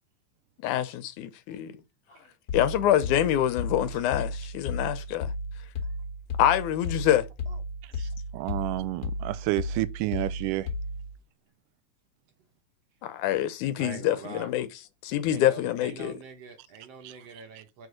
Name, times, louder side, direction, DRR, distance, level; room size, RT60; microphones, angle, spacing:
voice 1, 0.6-1.8 2.5-5.3 6.4-7.3 13.0-14.7 15.0-16.2, left 12 dB, 75° left, 2.1 m, -26 dB
sound 1, 2.5-11.2, left 2 dB, 40° left, 1.5 m, -34 dB
voice 2, 8.3-10.7 17.0-17.1, right 18 dB, 90° right, 2.2 m, -30 dB
voice 3, 13.8-14.5 15.3-17.9, right 6 dB, 60° right, 1.9 m, -45 dB
6.7 x 4.5 x 6.4 m
omnidirectional pair, 3.7 m